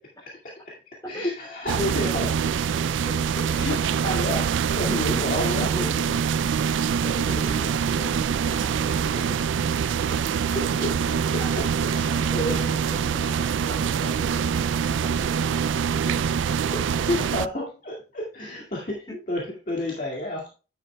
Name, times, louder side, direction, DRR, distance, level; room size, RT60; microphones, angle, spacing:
voice 1, 1.1-3.2 3.5-6.2 6.8-7.0 10.5-12.7 16.2-20.5, left 1 dB, 45° left, -3 dB, 2.0 m, -31 dB
sound 1, 1.7-17.5, right 7 dB, 85° right, 0.3 m, -24 dB
voice 2, 7.0-9.4 11.4-11.7 12.1-15.6 16.0-16.2 19.1-19.2, equal, 20° left, -2 dB, 4.8 m, -39 dB
9.9 x 8.2 x 2.2 m, 0.33 s
head